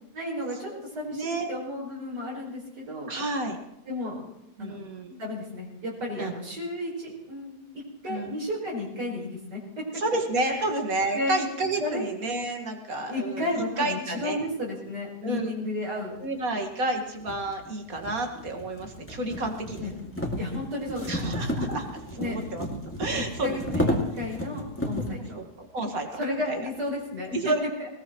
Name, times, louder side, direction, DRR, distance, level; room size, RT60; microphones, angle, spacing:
voice 1, 0.1-3.1 3.9-4.2 4.6-4.8 5.2-9.6 10.5-10.6 11.1-11.4 11.8-12.1 13.1-16.1 19.8-20.0 20.4-21.4 22.2-22.4 23.1-25.4 26.2-27.3 27.8-27.9, left 1 dB, 80° right, -5 dB, 5.1 m, -33 dB
voice 2, 1.1-1.5 3.1-3.6 4.6-5.2 6.2-6.3 8.1-8.4 10.0-14.4 15.2-15.5 16.2-20.0 21.1-21.9 22.2-22.7 23.0-23.8 25.3-26.2 26.5-26.6 27.3-27.6, right 2 dB, 55° right, 3 dB, 2.2 m, -30 dB
sound 1, 16.4-16.5 17.2-25.2, equal, 10° left, 2.1 m, -32 dB
20.0 x 20.0 x 3.1 m, 0.84 s
omnidirectional pair, 1.8 m